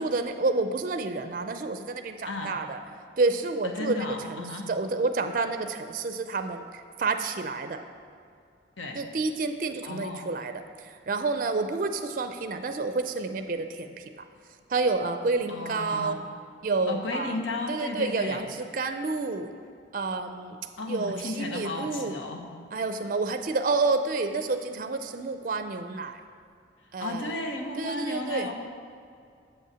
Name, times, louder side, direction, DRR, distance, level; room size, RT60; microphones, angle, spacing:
voice 1, 0.0-2.8 3.2-7.8 8.9-14.3 14.7-16.2 16.6-17.4 17.7-19.5 19.9-20.6 20.9-22.1 22.7-26.2 26.9-27.3 27.8-28.5, right 3 dB, 45° right, 8 dB, 0.4 m, -29 dB
voice 2, 2.2-2.6 3.6-4.7 8.8-9.0 9.8-10.3 15.5-16.2 16.9-18.5 20.8-22.5 27.0-28.5, left 2 dB, 90° left, 2 dB, 1.0 m, -34 dB
7.2 x 5.5 x 7.3 m, 2.3 s
head